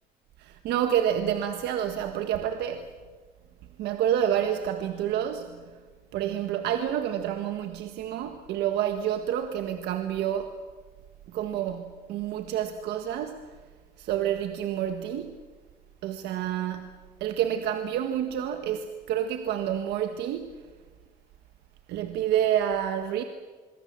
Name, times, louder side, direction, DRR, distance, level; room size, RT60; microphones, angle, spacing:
voice 1, 0.4-2.9 3.8-5.7 6.1-10.6 11.3-13.4 14.0-15.4 16.0-16.9 17.2-20.5 21.9-23.2, right 10 dB, 80° right, 1.6 m, -28 dB
26.0 x 23.0 x 7.6 m
cardioid pair, 110°, 17 cm